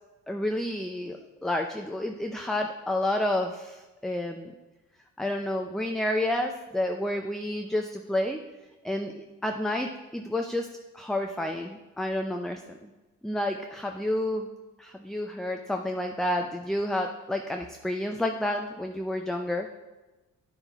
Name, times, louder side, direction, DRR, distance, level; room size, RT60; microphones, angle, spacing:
voice 1, 0.3-4.5 5.2-8.4 8.8-10.7 10.9-12.9 13.2-14.5 14.8-19.7, left 1 dB, ahead, 3 dB, 0.5 m, -30 dB
10.0 x 5.6 x 3.5 m, 1.1 s
cardioid pair, 90°, 30 cm